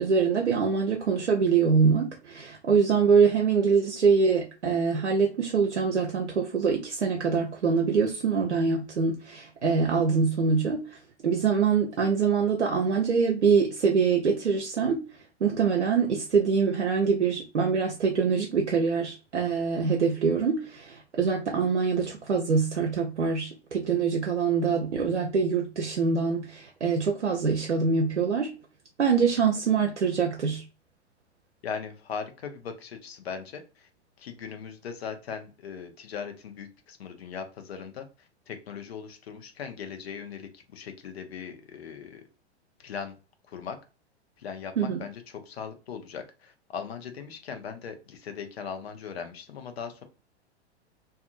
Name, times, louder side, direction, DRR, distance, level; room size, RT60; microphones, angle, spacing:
voice 1, 0.0-11.0 11.2-15.0 15.4-28.5 29.0-30.6 44.8-45.0, right 5 dB, 85° right, 0.6 m, -24 dB
voice 2, 31.6-33.9 34.2-38.1 38.5-42.2 42.8-43.2 43.5-43.8 44.4-50.0, left 6 dB, 65° left, 0.8 m, -39 dB
2.6 x 2.5 x 2.4 m
figure-of-eight pair, 95°, 34 cm